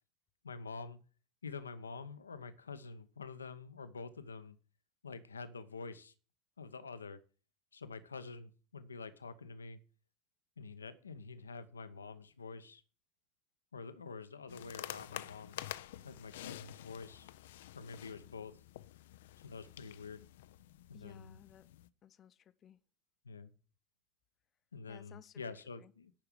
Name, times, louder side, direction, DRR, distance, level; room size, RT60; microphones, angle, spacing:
voice 1, 0.4-1.0 1.4-4.6 5.0-6.1 6.6-7.2 7.7-9.8 10.6-12.8 13.7-15.6 16.0-17.3 17.7-18.6 19.4-20.2 20.9-21.4 23.2-23.5 24.7-26.1, left 4 dB, 90° left, 1.0 m, -47 dB
sound 1, 14.5-21.9, left 14 dB, 70° left, 0.6 m, -49 dB
voice 2, 20.9-21.7 22.0-22.8 24.9-25.9, left 9 dB, 40° left, 0.8 m, -59 dB
10.5 x 5.8 x 8.2 m
hypercardioid pair, 75°, 0 cm